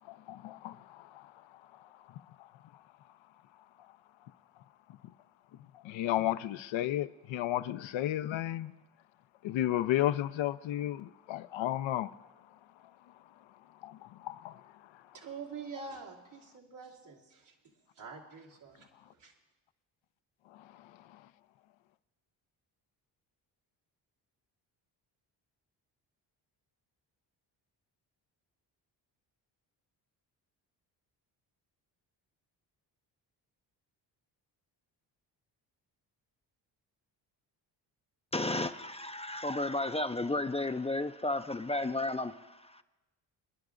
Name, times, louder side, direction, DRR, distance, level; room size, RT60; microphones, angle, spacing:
voice 1, 0.1-1.3 1.8-2.2 5.8-8.7 9.4-12.1 13.8-14.6 20.5-21.2, left 13 dB, 75° left, 0.6 m, -33 dB
voice 2, 15.1-17.5 18.0-19.3, right 5 dB, 85° right, 2.4 m, -46 dB
voice 3, 38.3-42.8, left 2 dB, 15° left, 0.4 m, -33 dB
25.5 x 10.5 x 2.5 m
supercardioid pair, 65°, 46 cm